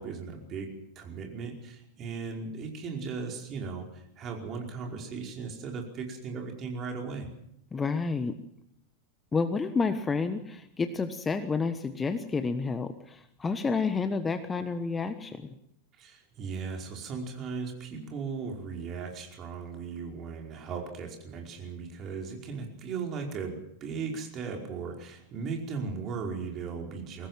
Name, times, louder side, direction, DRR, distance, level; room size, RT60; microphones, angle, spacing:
voice 1, 0.0-7.3 16.0-27.3, right 5 dB, 30° right, 1 dB, 5.1 m, -37 dB
voice 2, 7.7-8.3 9.3-15.5, left 4 dB, 15° left, 10 dB, 1.3 m, -30 dB
23.0 x 18.5 x 7.6 m, 0.76 s
figure-of-eight pair, 90°, 0 cm